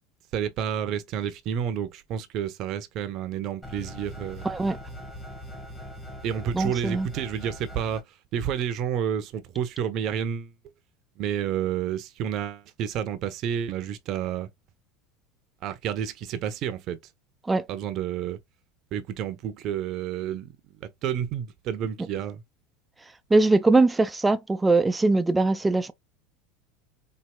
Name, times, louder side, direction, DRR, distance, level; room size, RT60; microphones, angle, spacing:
voice 1, 0.3-4.5 6.2-8.0 8.3-10.5 11.2-14.5 15.6-17.0 17.7-18.4 18.9-20.5 21.0-22.4, right 9 dB, 50° right, 0.8 m, -30 dB
sound 1, 3.6-8.0, equal, 10° left, 1.7 m, -41 dB
voice 2, 4.4-4.8 6.5-7.1 17.5-17.6 23.3-25.9, right 3 dB, 10° right, 0.5 m, -21 dB
4.4 x 2.7 x 2.2 m
supercardioid pair, 125°, 0 cm